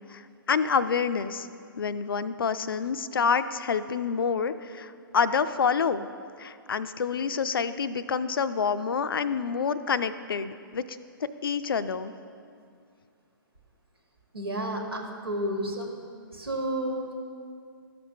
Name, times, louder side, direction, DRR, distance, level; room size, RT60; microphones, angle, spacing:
voice 1, 0.5-1.5 1.8-6.1 6.4-12.1, left 6 dB, 75° left, 13 dB, 0.4 m, -27 dB
voice 2, 14.3-15.9 16.3-17.1, right 1 dB, 90° right, 1 dB, 1.4 m, -31 dB
12.5 x 6.0 x 2.7 m, 2.3 s
figure-of-eight pair, 120°, 12 cm